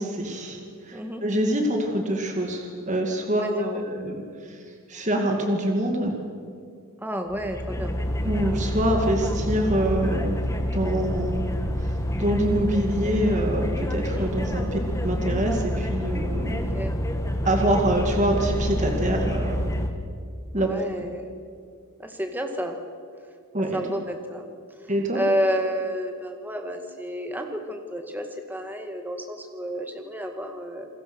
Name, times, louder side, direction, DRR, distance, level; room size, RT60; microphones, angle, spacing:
voice 1, 0.0-4.6 4.9-6.1 8.2-11.5 11.8-11.9 12.2-16.7 17.4-19.6 20.5-20.7 23.5-23.8 24.9-25.2, right 1 dB, 35° right, 2 dB, 2.4 m, -25 dB
voice 2, 0.9-1.2 3.3-3.8 7.0-8.0 14.2-14.6 16.7-16.9 20.6-21.3 22.0-22.8 23.7-24.5 25.1-30.9, equal, 10° right, 4 dB, 2.0 m, -30 dB
sound 1, 7.3-19.9, equal, 15° left, 1.5 m, -27 dB
28.5 x 21.0 x 6.3 m, 2.2 s
head